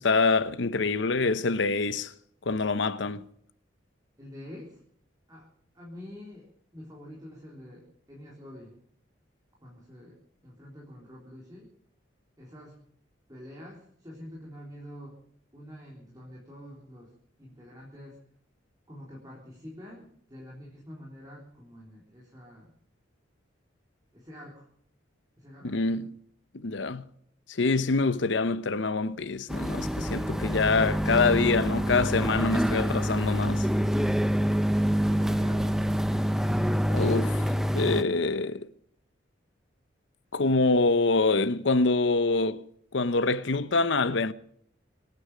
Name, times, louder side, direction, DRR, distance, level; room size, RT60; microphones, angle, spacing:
voice 1, 0.0-2.1 2.5-3.2 25.6-26.1 26.6-27.1 27.5-33.7 36.9-37.5 37.7-38.7 40.3-42.6 42.9-44.3, left 3 dB, 65° left, 0.8 m, -25 dB
voice 2, 4.2-4.8 5.3-8.7 9.6-11.7 12.4-12.8 13.3-15.2 15.5-17.1 17.4-18.2 18.9-22.7 24.1-24.7 25.4-25.9 35.1-35.9, left 1 dB, 20° right, 3.8 m, -46 dB
sound 1, 29.5-38.0, equal, ahead, 0.6 m, -26 dB
25.0 x 9.8 x 5.0 m
head